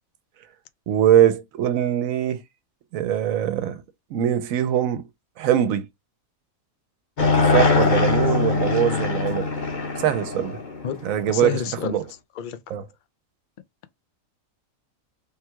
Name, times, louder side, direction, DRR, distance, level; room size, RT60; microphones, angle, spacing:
voice 1, 0.9-2.4 2.9-3.8 4.1-5.1 5.4-5.9 7.3-9.5 10.0-10.6 11.0-12.0 12.7-12.9, right 10 dB, 80° right, 1.0 m, -22 dB
sound 1, 7.2-11.5, left 4 dB, 40° left, 0.9 m, -22 dB
voice 2, 11.3-12.0 12.4-12.6, left 9 dB, 70° left, 0.4 m, -29 dB
3.6 x 2.2 x 4.4 m
omnidirectional pair, 1.4 m